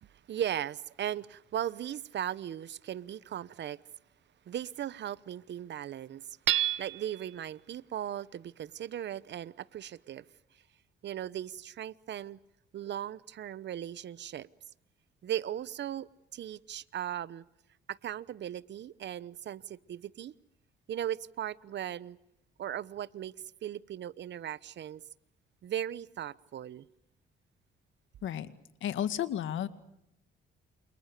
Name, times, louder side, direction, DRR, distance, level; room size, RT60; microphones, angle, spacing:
voice 1, 0.0-3.8 4.5-6.3 6.8-10.3 11.0-12.4 12.7-14.5 15.2-17.4 17.9-20.4 20.9-22.2 22.6-23.3 23.6-25.0 25.6-26.9, right 11 dB, 60° right, 1.0 m, -37 dB
Hammer / Chink clink, 6.5-7.3, right 13 dB, 85° right, 1.0 m, -29 dB
voice 2, 28.8-29.7, left 10 dB, 75° left, 2.0 m, -32 dB
29.5 x 28.0 x 6.8 m
cardioid pair, 90°, 20 cm